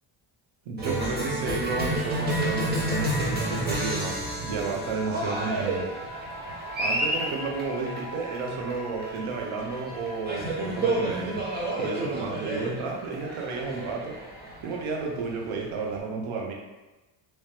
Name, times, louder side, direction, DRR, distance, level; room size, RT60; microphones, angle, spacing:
voice 1, 0.7-5.9 6.8-11.4 11.8-14.2 14.6-16.5, right 4 dB, 75° right, 0 dB, 0.9 m, -32 dB
Cheering, 0.8-16.0, right 1 dB, 20° right, 0.9 m, -30 dB
sound 1, 2.0-12.2, right 1 dB, 55° left, 0.6 m, -42 dB
3.2 x 2.8 x 3.2 m, 1.1 s
cardioid pair, 105°, 49 cm